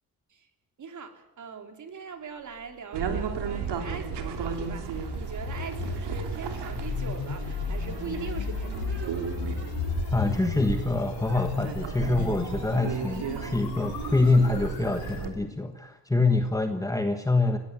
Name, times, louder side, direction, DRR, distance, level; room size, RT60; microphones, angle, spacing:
voice 1, 0.8-9.5, right 5 dB, 45° right, 6 dB, 3.2 m, -41 dB
sound 1, 2.9-15.3, right 6 dB, 85° right, 3.2 m, -34 dB
sound 2, 3.2-15.3, left 7 dB, 60° left, 4.8 m, -36 dB
voice 2, 10.1-17.6, left 3 dB, 10° left, 6 dB, 1.2 m, -25 dB
21.5 x 16.5 x 9.6 m, 1.0 s
cardioid pair, 140°, 40 cm